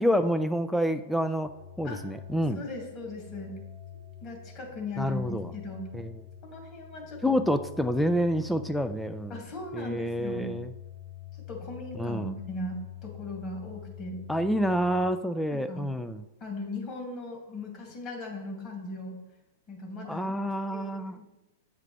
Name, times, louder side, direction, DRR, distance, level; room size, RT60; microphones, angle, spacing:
voice 1, 0.0-1.5 1.8-2.6 5.0-5.5 5.9-6.1 7.2-9.4 9.7-10.7 12.0-12.3 14.3-16.2 20.1-21.2, equal, 5° left, 9 dB, 0.3 m, -28 dB
sound 1, 1.4-15.1, left 10 dB, 15° right, 0.9 m, -46 dB
voice 2, 2.6-3.6 4.2-5.9 6.4-7.4 9.3-10.5 11.5-14.2 15.5-15.9 16.4-19.2 19.7-20.3 20.7-21.2, left 2 dB, 35° left, 0 dB, 2.3 m, -38 dB
8.3 x 5.0 x 3.3 m, 0.99 s
hypercardioid pair, 120°, 0 cm